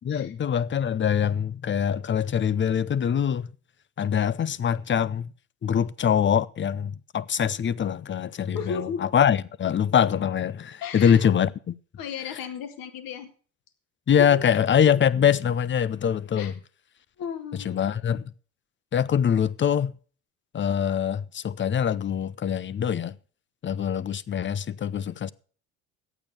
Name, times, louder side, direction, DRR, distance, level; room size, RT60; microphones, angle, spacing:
voice 1, 0.0-3.5 4.0-5.3 5.6-11.7 14.1-16.5 17.6-18.2 18.9-19.9 20.5-23.1 23.6-25.3, left 8 dB, 30° left, 0.7 m, -24 dB
voice 2, 8.5-9.0 10.8-11.2 12.0-13.3 14.3-14.4 16.3-16.5 17.2-17.7, left 6 dB, 60° left, 2.1 m, -34 dB
12.0 x 8.8 x 6.7 m
hypercardioid pair, 65°, 38 cm